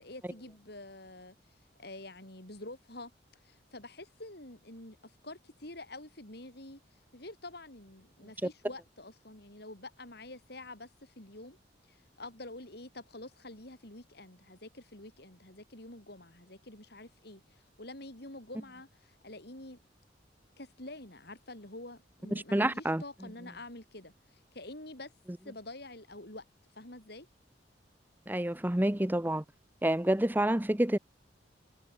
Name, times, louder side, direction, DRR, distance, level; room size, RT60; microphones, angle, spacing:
voice 1, 0.0-6.8 7.1-11.6 11.9-19.8 20.6-25.1 25.4-26.4 26.7-27.3, left 2 dB, 60° left, 5.7 m, -47 dB
voice 2, 22.3-23.0 28.3-29.4 29.8-31.0, right 1 dB, 10° right, 0.8 m, -28 dB
head